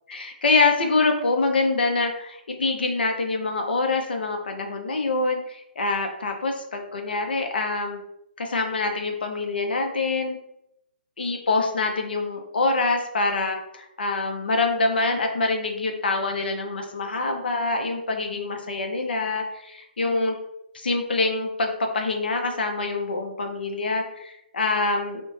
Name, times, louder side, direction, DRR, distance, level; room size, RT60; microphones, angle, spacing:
voice 1, 0.1-8.0 8.4-10.4 11.2-20.4 20.7-25.2, left 3 dB, 65° left, 4 dB, 0.5 m, -25 dB
2.5 x 2.1 x 3.0 m, 0.80 s
figure-of-eight pair, 130°, 6 cm